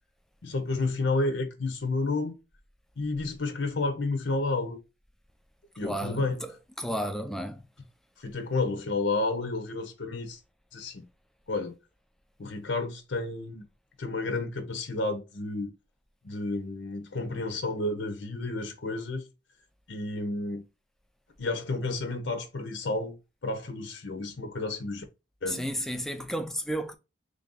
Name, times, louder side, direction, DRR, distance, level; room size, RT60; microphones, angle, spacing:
voice 1, 0.4-2.3 3.0-4.8 5.8-6.6 8.2-10.4 10.7-11.0 11.5-11.7 12.4-13.6 14.0-15.7 16.2-19.2 19.9-20.6 21.4-23.2 23.4-25.0 25.4-25.6, left 2 dB, 70° left, 0.7 m, -31 dB
voice 2, 5.8-6.3 6.8-7.6 25.5-27.0, equal, ahead, 0.3 m, -32 dB
3.3 x 2.6 x 3.7 m
head